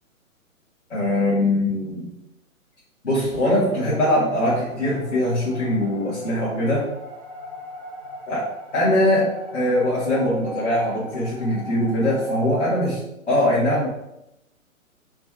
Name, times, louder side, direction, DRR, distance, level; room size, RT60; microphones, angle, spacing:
voice 1, 0.9-2.1 3.0-6.9 8.3-8.5 8.7-13.0 13.3-13.9, left 1 dB, 60° left, -8 dB, 1.3 m, -22 dB
sound 1, 3.4-12.9, equal, 30° right, 0.4 m, -40 dB
3.2 x 2.3 x 4.4 m, 0.87 s
figure-of-eight pair, 125°, 41 cm